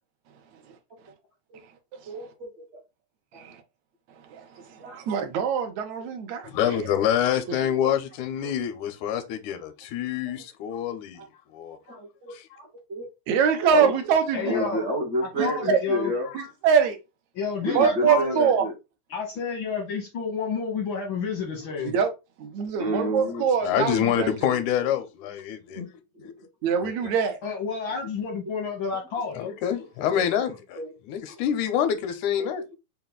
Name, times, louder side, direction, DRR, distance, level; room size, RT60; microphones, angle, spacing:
voice 1, 2.0-2.8 3.3-3.4 4.8-5.0 7.0-7.4 11.2-11.3 11.9-13.1 13.7-13.9 14.4-16.3 17.6-18.7 22.8-23.4 25.7-25.9 30.1-30.2 30.8-30.9 31.3-31.4 32.4-32.7, equal, 60° right, 0.7 m, -30 dB
voice 2, 4.3-7.0 13.3-14.7 15.4-15.8 16.3-17.0 17.7-18.7 21.9-22.1 22.4-24.6 26.6-27.4, right 7 dB, 75° right, 2.0 m, -24 dB
voice 3, 6.4-11.2 11.5-11.8 12.3-12.4 23.6-25.8 26.2-26.3 26.8-27.1 29.3-30.8 31.1-32.6, left 9 dB, 90° left, 2.1 m, -26 dB
voice 4, 14.3-14.9 15.4-16.1 17.3-18.4 19.1-21.9 27.4-29.5, left 5 dB, 75° left, 1.1 m, -30 dB
5.6 x 2.3 x 3.7 m
omnidirectional pair, 3.4 m